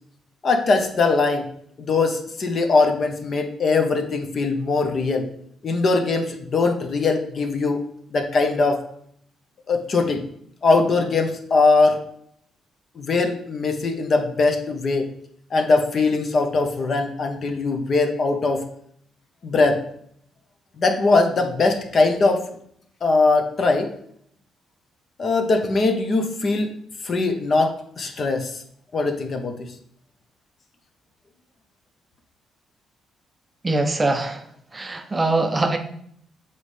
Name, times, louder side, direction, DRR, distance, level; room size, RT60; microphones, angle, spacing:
voice 1, 0.4-1.4 1.8-5.3 5.6-7.8 8.1-8.8 9.7-10.2 10.6-12.0 13.0-15.1 15.5-18.6 19.4-19.8 20.8-22.4 23.0-23.9 25.2-26.7 27.0-28.5 28.9-29.7, left 3 dB, 40° left, 4 dB, 0.8 m, -21 dB
voice 2, 33.6-34.4 34.7-35.8, right 2 dB, 20° right, 5 dB, 0.5 m, -22 dB
7.2 x 4.2 x 3.2 m, 0.68 s
cardioid pair, 135°, 0 cm